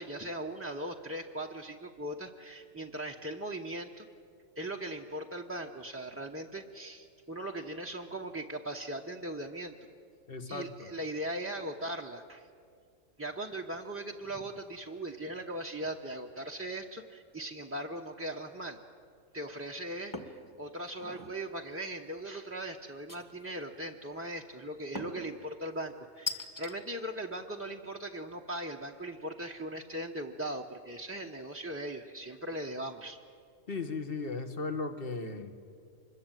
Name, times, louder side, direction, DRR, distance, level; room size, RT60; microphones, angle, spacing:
voice 1, 0.0-4.1 4.6-9.7 10.5-12.5 13.2-18.8 19.3-33.2, right 1 dB, 10° right, 0 dB, 0.8 m, -39 dB
voice 2, 10.3-10.7 33.7-35.5, left 3 dB, 45° left, 6 dB, 1.8 m, -36 dB
sound 1, 20.1-20.4 20.9-21.4 23.1-23.6 25.0-25.3 26.3-26.7, left 3 dB, 15° left, 1.7 m, -39 dB
25.5 x 21.5 x 9.1 m, 2.3 s
omnidirectional pair, 1.4 m